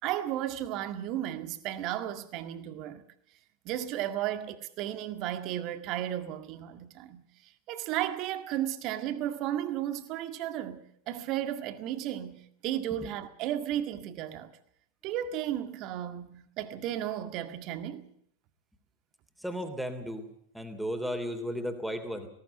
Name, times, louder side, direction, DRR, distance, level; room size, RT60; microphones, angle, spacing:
voice 1, 0.0-3.0 3.7-14.5 15.0-18.1, right 12 dB, 40° right, 1.8 m, -34 dB
voice 2, 19.4-20.2 20.5-22.3, equal, ahead, 3.1 m, -34 dB
18.5 x 18.0 x 8.1 m
figure-of-eight pair, 90°, 0 cm